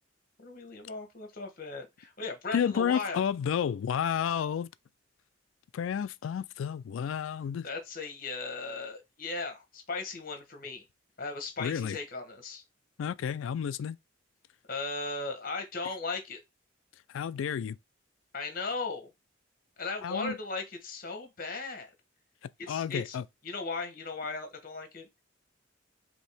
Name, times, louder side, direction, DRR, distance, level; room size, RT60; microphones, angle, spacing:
voice 1, 0.4-3.2 7.6-10.9 11.2-12.6 14.7-16.4 18.3-19.1 19.8-21.9 22.6-23.2 23.4-25.2, left 3 dB, 45° left, 1.2 m, -37 dB
voice 2, 2.5-4.7 5.7-7.7 11.6-12.0 13.0-14.0 17.1-17.8 20.0-20.3 22.7-23.2, left 8 dB, 80° left, 0.3 m, -31 dB
5.2 x 2.8 x 3.4 m
head